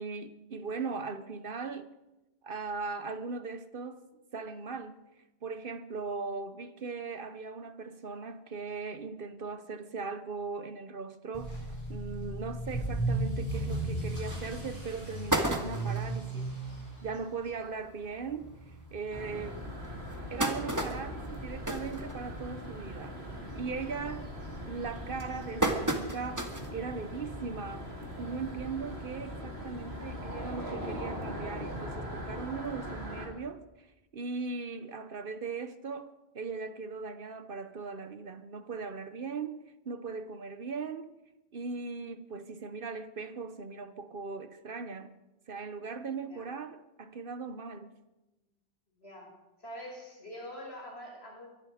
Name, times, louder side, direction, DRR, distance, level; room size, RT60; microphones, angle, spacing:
voice 1, 0.0-1.9 2.4-4.0 4.3-5.0 5.4-16.6 17.0-18.5 18.9-19.7 20.3-23.2 23.5-24.3 24.6-27.9 28.2-33.9 34.1-39.6 39.8-41.1 41.5-45.1 45.5-47.9, right 4 dB, 60° right, 1.0 m, -39 dB
Motor vehicle (road) / Accelerating revving vroom, 11.3-26.2 26.5-26.9 27.4-27.5 27.8-27.9 28.2-28.3 29.6-29.7, right 2 dB, 15° left, 7.0 m, -38 dB
sound 1, 14.2-14.3 14.7-14.8 15.1-16.1 16.7-16.8 17.1-17.2 17.5-17.7 18.4-18.5 19.0-19.1 19.8-22.7 23.0-23.4 23.7-24.1 24.7-26.8 27.2-27.3 28.5-28.6, right 1 dB, 15° right, 1.7 m, -32 dB
sound 2, 19.1-33.3, equal, 75° right, 3.1 m, -41 dB
voice 2, 49.0-49.3 49.6-51.5, equal, 70° left, 6.5 m, -45 dB
23.0 x 11.5 x 5.0 m
omnidirectional pair, 1.1 m